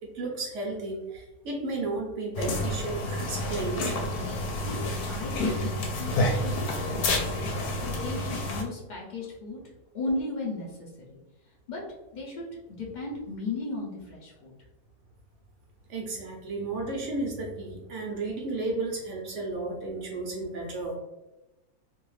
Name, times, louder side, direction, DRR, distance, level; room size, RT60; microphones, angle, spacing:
voice 1, 0.0-4.1 15.9-21.0, right 2 dB, 65° right, -1 dB, 0.8 m, -33 dB
sound 1, 2.3-8.6, left 1 dB, 80° left, 1.1 m, -29 dB
voice 2, 4.6-5.7 6.0-7.3 7.8-9.6 9.9-11.2 11.7-11.8 12.1-14.5, left 2 dB, 55° left, -4 dB, 0.5 m, -36 dB
2.7 x 2.3 x 3.1 m, 1.0 s
omnidirectional pair, 1.6 m